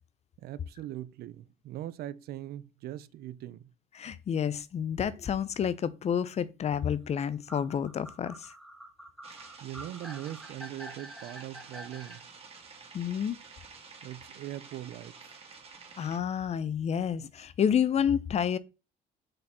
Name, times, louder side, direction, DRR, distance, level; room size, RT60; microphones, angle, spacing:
voice 1, 0.4-3.7 9.6-12.2 14.0-15.4, right 13 dB, 70° right, 0.5 m, -41 dB
voice 2, 4.0-8.5 12.9-13.4 16.0-18.6, left 8 dB, 40° left, 0.6 m, -29 dB
sound 1, 7.5-12.2, right 1 dB, ahead, 1.7 m, -47 dB
sound 2, 9.2-16.2, right 5 dB, 35° right, 1.7 m, -50 dB
6.7 x 4.1 x 4.3 m
cardioid pair, 110°, 17 cm